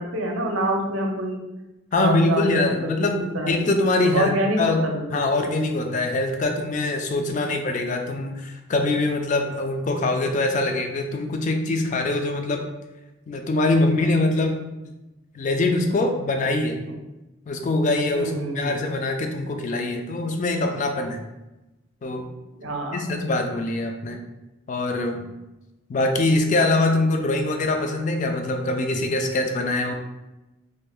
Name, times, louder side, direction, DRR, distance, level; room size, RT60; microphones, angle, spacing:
voice 1, 0.0-1.4 1.9-3.7 4.1-5.2 7.4-7.6 18.1-18.8 22.6-23.0, right 1 dB, 70° right, 2 dB, 0.6 m, -27 dB
voice 2, 1.9-12.7 13.3-14.6 15.3-16.8 17.5-21.2 22.0-22.3 22.9-24.2 24.7-25.3 25.9-29.9, left 2 dB, 35° left, 4 dB, 0.3 m, -23 dB
2.6 x 2.4 x 3.4 m, 1.0 s
head